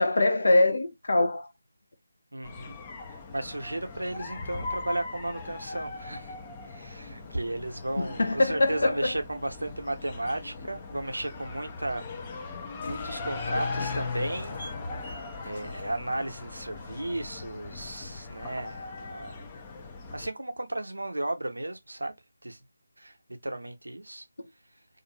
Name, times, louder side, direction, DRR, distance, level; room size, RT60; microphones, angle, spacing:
voice 1, 0.0-1.5 8.0-9.1 24.4-24.5, left 2 dB, 60° left, 0.6 m, -23 dB
voice 2, 2.3-2.8 3.1-6.3 6.7-12.1 12.9-14.6 15.0-19.5 20.1-22.1 22.4-22.6 23.0-23.2 23.4-24.3, right 1 dB, 80° right, 0.7 m, -34 dB
sound 1, 2.4-20.3, left 4 dB, 20° left, 0.5 m, -39 dB
sound 2, 12.8-16.8, left 3 dB, 45° left, 0.9 m, -43 dB
2.5 x 2.5 x 2.9 m
figure-of-eight pair, 160°, 0 cm